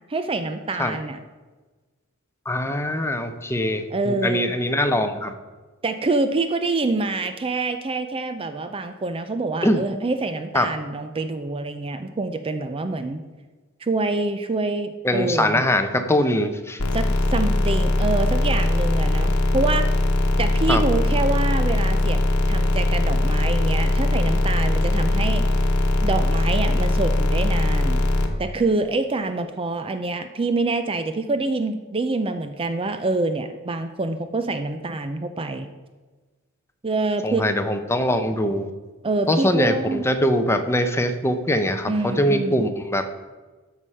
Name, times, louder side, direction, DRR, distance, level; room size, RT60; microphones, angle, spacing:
voice 1, 0.1-1.2 3.9-4.5 5.8-13.2 13.8-15.6 16.9-19.9 20.4-22.2 22.5-25.5 26.0-28.0 28.4-35.7 36.8-37.4 39.0-40.0 41.9-42.6, right 3 dB, 25° right, 9 dB, 0.5 m, -26 dB
voice 2, 2.5-5.3 9.6-9.8 10.5-10.7 15.0-16.8 20.7-20.8 37.2-38.7 39.3-43.1, left 1 dB, 10° left, 8 dB, 0.7 m, -22 dB
sound 1, 16.8-28.3, left 1 dB, 75° left, 1.2 m, -20 dB
13.0 x 4.9 x 5.4 m, 1.3 s
head